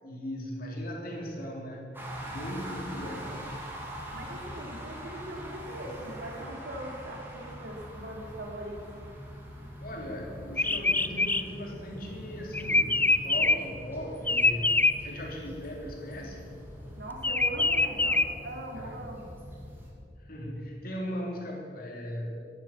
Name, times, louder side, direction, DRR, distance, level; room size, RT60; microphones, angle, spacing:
voice 1, 0.0-2.0 2.3-3.3 9.8-16.5 18.7-18.9 20.2-22.4, equal, 55° left, -1 dB, 3.3 m, -38 dB
sound 1, 1.9-19.9, equal, 15° right, 3.2 m, -43 dB
voice 2, 2.6-3.3 4.1-8.8 16.9-19.3, right 1 dB, 75° right, 0 dB, 3.2 m, -41 dB
sound 2, 10.5-13.7 14.3-14.9 17.2-18.2, left 3 dB, 10° left, 0.5 m, -24 dB
15.0 x 10.5 x 7.4 m, 2.5 s
head